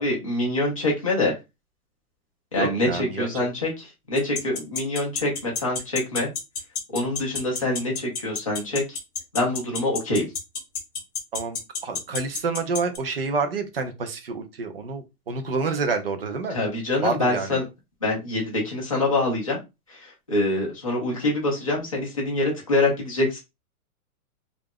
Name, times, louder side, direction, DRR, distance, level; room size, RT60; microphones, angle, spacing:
voice 1, 0.0-1.3 2.5-6.3 6.9-8.8 9.3-10.3 16.5-17.6 18.0-19.6 19.9-23.4, left 2 dB, 25° left, -3 dB, 0.4 m, -25 dB
voice 2, 2.5-3.3 11.3-16.6 17.0-17.6, right 4 dB, 45° right, 7 dB, 0.4 m, -28 dB
sound 1, 4.2-13.0, left 5 dB, 45° left, 0.7 m, -29 dB
2.4 x 2.1 x 3.4 m, 0.24 s
hypercardioid pair, 170°, 45 cm